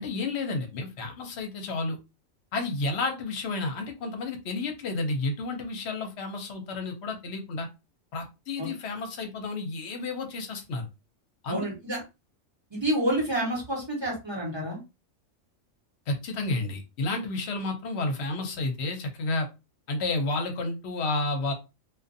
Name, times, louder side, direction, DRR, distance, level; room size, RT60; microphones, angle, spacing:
voice 1, 0.0-2.0 2.5-7.7 8.1-10.9 11.4-11.7 16.1-19.5 19.9-21.5, left 3 dB, 60° left, 4 dB, 0.9 m, -31 dB
voice 2, 11.5-12.0 12.7-14.8, right 1 dB, 20° right, -3 dB, 1.1 m, -28 dB
2.5 x 2.4 x 2.6 m, 0.26 s
omnidirectional pair, 1.4 m